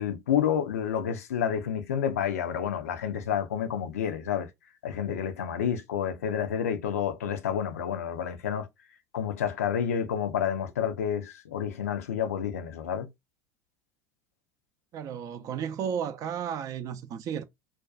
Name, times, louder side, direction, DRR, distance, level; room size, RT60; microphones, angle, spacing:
voice 1, 0.0-4.5 4.8-8.7 9.1-13.1, left 8 dB, 80° left, 0.4 m, -29 dB
voice 2, 14.9-17.4, right 8 dB, 45° right, 0.4 m, -33 dB
2.4 x 2.2 x 2.3 m
hypercardioid pair, 75°, 8 cm